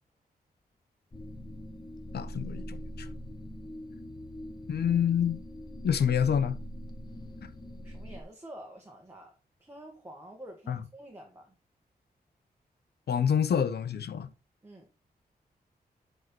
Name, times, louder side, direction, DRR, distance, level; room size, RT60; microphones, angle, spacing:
sound 1, 1.1-8.2, equal, 25° left, 1.3 m, -42 dB
voice 1, 2.1-3.1 4.7-5.4 5.8-6.6 10.7-10.8 13.1-14.3, left 8 dB, 85° left, 0.9 m, -27 dB
voice 2, 7.8-9.3 9.6-11.6 14.6-14.9, right 1 dB, 15° right, 1.8 m, -48 dB
9.3 x 5.5 x 4.5 m
wide cardioid pair, 155°, 16 cm